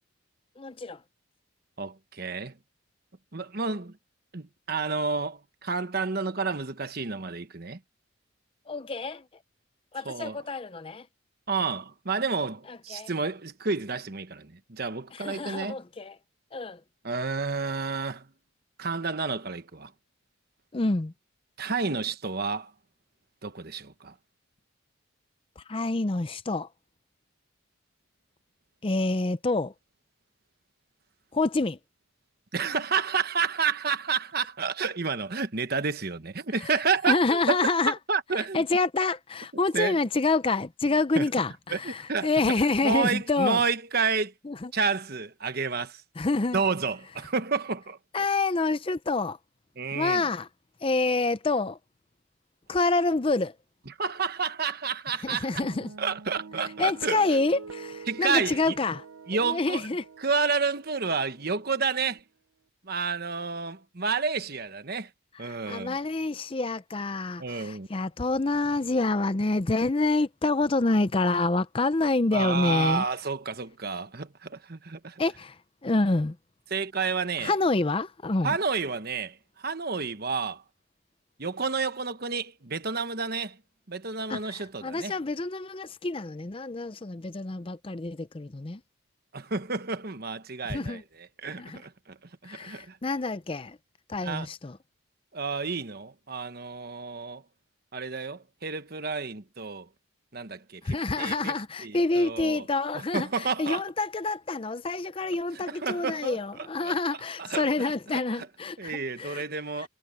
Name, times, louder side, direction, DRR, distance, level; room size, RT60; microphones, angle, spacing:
voice 1, 0.6-1.0 8.7-9.2 9.9-11.1 12.7-13.1 15.1-16.1 16.5-16.8 20.7-21.1 25.6-26.7 28.8-29.7 31.3-31.8 36.6-36.7 37.1-38.0 38.5-43.6 44.5-44.7 46.2-46.6 48.1-49.4 49.9-50.5 50.8-51.8 52.7-53.6 55.2-55.9 56.8-59.0 59.3-60.0 65.4-73.0 75.2-76.4 77.4-78.6 84.3-88.8 90.7-91.0 91.6-91.8 92.5-93.8 94.1-94.8 100.8-109.4 109.8-109.9, left 3 dB, 25° left, 0.5 m, -27 dB
voice 2, 1.8-2.6 3.3-4.0 4.3-7.8 10.0-10.4 11.5-15.8 17.0-18.3 18.8-19.9 21.6-22.7 23.4-24.1 32.5-38.6 39.7-40.0 41.1-41.3 41.7-42.5 42.8-44.3 44.7-46.0 46.5-48.0 49.8-50.3 53.9-55.5 56.0-57.3 58.1-58.7 59.3-59.9 60.2-62.2 62.8-65.1 65.4-66.0 67.4-67.9 72.3-75.2 76.7-77.5 78.4-80.6 81.4-83.6 83.9-85.1 89.3-93.0 94.2-94.5 95.3-97.4 97.9-99.9 100.3-101.5 101.8-102.6 102.9-103.8 105.5-106.9 107.4-108.5 108.8-109.9, right 5 dB, 45° right, 1.2 m, -30 dB
sound 1, 55.6-62.2, right 4 dB, 85° right, 0.7 m, -45 dB
head